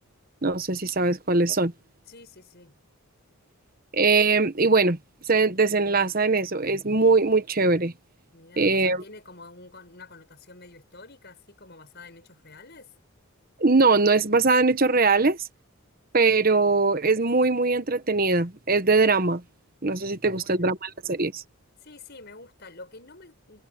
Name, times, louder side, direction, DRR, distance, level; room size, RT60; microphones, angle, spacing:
voice 1, 0.4-1.7 3.9-5.0 5.3-7.9 8.6-9.0 13.6-15.4 16.1-19.4 19.8-21.4, right 3 dB, 40° right, 1.2 m, -21 dB
voice 2, 2.1-2.7 8.3-12.9 20.1-20.8 21.8-23.7, left 3 dB, 50° left, 6.4 m, -48 dB
head